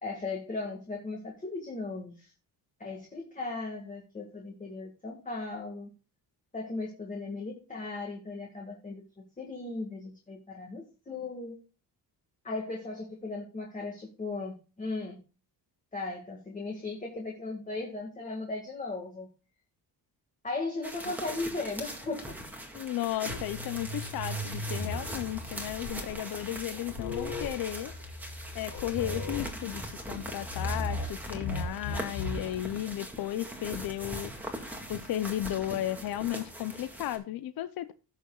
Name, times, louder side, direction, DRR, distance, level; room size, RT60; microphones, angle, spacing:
voice 1, 0.0-2.3 2.8-5.9 6.5-9.0 9.4-11.6 12.4-15.2 15.9-19.3 20.4-22.2 25.8-26.2, left 3 dB, 20° left, 1.9 m, -37 dB
sound 1, 20.8-37.2, right 1 dB, 5° right, 1.9 m, -41 dB
voice 2, 22.7-27.9 28.5-34.3 34.9-37.9, left 13 dB, 60° left, 0.7 m, -34 dB
sound 2, 23.3-32.5, left 2 dB, 85° left, 4.1 m, -37 dB
16.5 x 6.6 x 2.3 m
cardioid pair, 155°, 39 cm